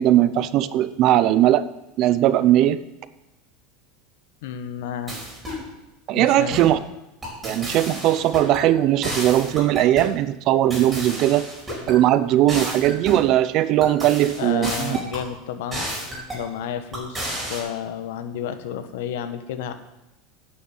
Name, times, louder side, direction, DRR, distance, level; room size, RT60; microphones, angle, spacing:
voice 1, 0.0-1.6 2.0-2.8 6.1-6.8 7.4-11.4 11.9-15.0, right 13 dB, 50° right, 15 dB, 0.6 m, -19 dB
voice 2, 4.4-5.2 6.1-6.6 14.4-15.9 16.3-19.7, left 9 dB, 80° left, 10 dB, 1.1 m, -31 dB
sound 1, 5.1-5.7 6.5-6.8 7.2-8.6 9.0-10.1 10.7-12.0 12.5-13.3 13.8-15.3 15.7-16.5 16.9-17.6, right 1 dB, 15° right, 4.5 m, -32 dB
9.2 x 6.5 x 8.2 m, 0.94 s
supercardioid pair, 125°, 0 cm